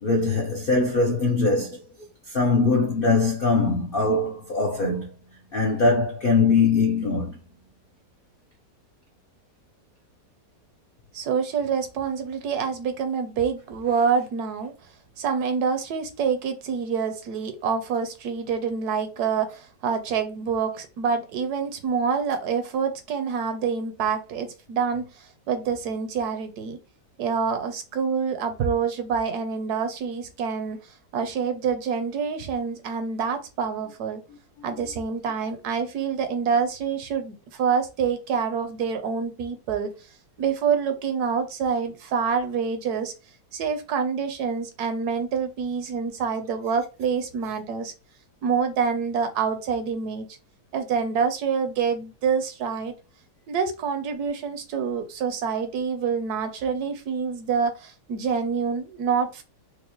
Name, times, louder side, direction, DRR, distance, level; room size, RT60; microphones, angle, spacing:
voice 1, 0.0-1.8 2.3-5.1 5.5-7.4, left 3 dB, 65° left, 0.5 m, -22 dB
voice 2, 11.1-14.7 15.2-25.1 25.5-26.8 27.2-30.8 31.1-34.2 34.6-39.9 40.4-43.1 43.5-47.9 48.4-50.3 50.7-52.9 53.5-59.4, right 6 dB, 70° right, 1.1 m, -26 dB
4.6 x 2.1 x 2.9 m
omnidirectional pair, 1.8 m